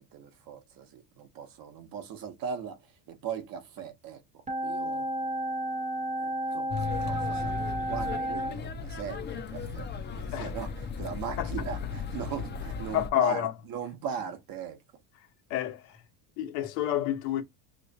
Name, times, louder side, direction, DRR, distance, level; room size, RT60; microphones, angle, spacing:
voice 1, 0.0-4.2 4.6-5.1 6.2-6.7 7.0-9.9 10.1-14.8, right 7 dB, 45° right, 1.1 m, -39 dB
sound 1, 4.5-8.6, right 1 dB, 15° right, 0.9 m, -32 dB
sound 2, 6.7-13.1, left 5 dB, 20° left, 0.6 m, -36 dB
voice 2, 12.9-13.5 15.5-16.0 16.4-17.4, left 12 dB, 75° left, 1.2 m, -29 dB
3.1 x 2.5 x 4.0 m
supercardioid pair, 125°, 48 cm